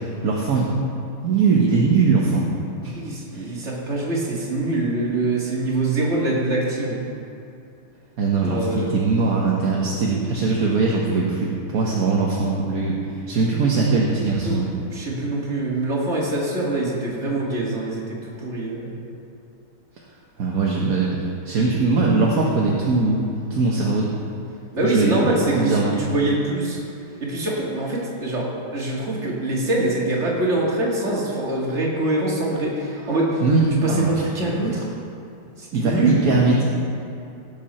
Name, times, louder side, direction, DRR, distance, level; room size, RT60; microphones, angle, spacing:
voice 1, 0.2-0.7 1.2-2.5 2.8-2.9 3.3-3.5 8.2-13.0 13.3-14.7 20.4-21.1 21.4-24.1 24.8-25.9 33.4-34.1 34.4-34.6 35.7-36.7, right 4 dB, 50° right, -3 dB, 1.4 m, -21 dB
voice 2, 2.9-7.0 8.4-8.9 14.4-14.6 14.9-18.9 24.7-26.8 27.2-33.4 33.8-34.9 35.6-36.2, right 2 dB, 35° right, -4 dB, 2.4 m, -24 dB
17.5 x 7.7 x 4.3 m, 2.6 s
omnidirectional pair, 2.3 m